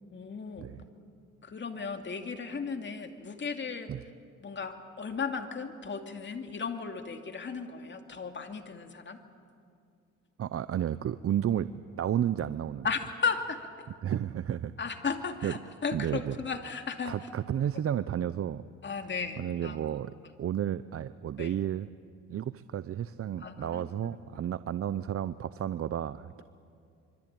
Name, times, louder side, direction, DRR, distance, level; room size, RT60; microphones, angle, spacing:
voice 1, 0.1-0.7 1.4-3.9 4.4-9.2 12.8-13.9 14.8-17.2 18.8-19.8 21.4-21.5 23.4-24.2, left 5 dB, 40° left, 5 dB, 2.5 m, -35 dB
voice 2, 10.4-11.7 12.0-12.9 14.0-14.7 15.4-15.5 15.9-16.4 17.0-18.6 19.4-20.1 20.4-21.9 22.3-26.4, right 10 dB, 50° right, 14 dB, 0.7 m, -32 dB
26.0 x 24.0 x 9.0 m, 2.3 s
cardioid pair, 90°, 30 cm